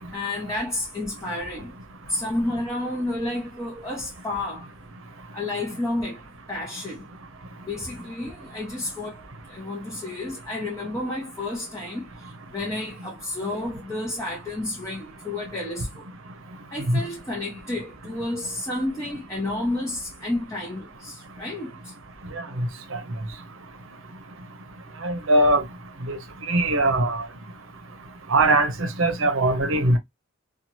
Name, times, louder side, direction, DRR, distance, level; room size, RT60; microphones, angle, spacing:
voice 1, 0.1-1.7 2.1-4.7 5.3-6.2 6.5-7.1 7.7-9.2 9.5-12.1 12.5-16.1 16.7-21.7, left 2 dB, 15° left, 0.6 m, -30 dB
voice 2, 22.3-22.7 22.9-23.0 25.0-25.6 26.1-26.2 26.5-27.3 28.3-30.0, right 2 dB, 75° right, 0.7 m, -21 dB
2.8 x 2.3 x 2.8 m
head